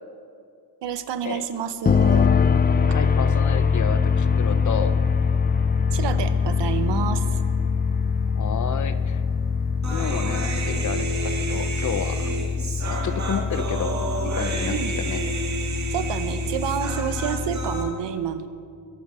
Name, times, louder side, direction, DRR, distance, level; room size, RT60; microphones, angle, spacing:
voice 1, 0.8-2.3 5.9-7.4 14.7-15.0 15.9-18.5, right 8 dB, 80° right, 10 dB, 1.0 m, -29 dB
sound 1, 1.8-17.9, left 5 dB, 25° left, 0.4 m, -23 dB
voice 2, 2.8-5.0 8.3-9.2 9.9-12.3 12.9-14.0 14.3-15.2, left 7 dB, 45° left, 12 dB, 0.7 m, -31 dB
Human voice, 9.8-17.8, right 3 dB, 40° right, 2.0 m, -31 dB
22.5 x 9.7 x 5.6 m, 2.3 s
wide cardioid pair, 145°, 42 cm